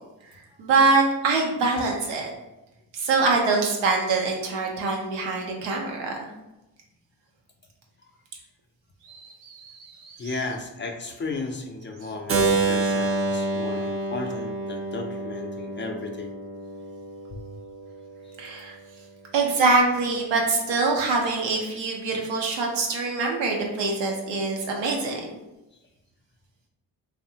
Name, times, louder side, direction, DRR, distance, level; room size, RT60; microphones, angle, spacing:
voice 1, 0.6-2.3 2.9-6.1 9.0-10.2 18.4-18.7 19.3-25.3, right 3 dB, 90° right, 0 dB, 0.6 m, -24 dB
voice 2, 10.2-16.4 17.3-17.4, left 3 dB, 30° left, 2 dB, 0.4 m, -35 dB
Keyboard (musical), 12.3-18.1, right 3 dB, 30° right, 0.5 m, -28 dB
2.6 x 2.0 x 2.7 m, 0.98 s
supercardioid pair, 50°, 44 cm